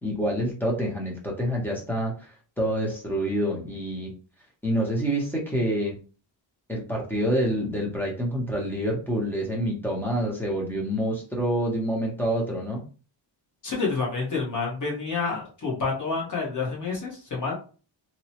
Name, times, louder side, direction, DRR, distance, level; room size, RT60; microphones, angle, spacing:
voice 1, 0.0-2.3 2.6-4.1 4.6-5.9 6.7-12.8, equal, 5° left, -2 dB, 0.6 m, -27 dB
voice 2, 13.6-17.5, left 4 dB, 40° left, -3 dB, 1.1 m, -28 dB
2.9 x 2.1 x 2.8 m, 0.36 s
wide cardioid pair, 180°, 47 cm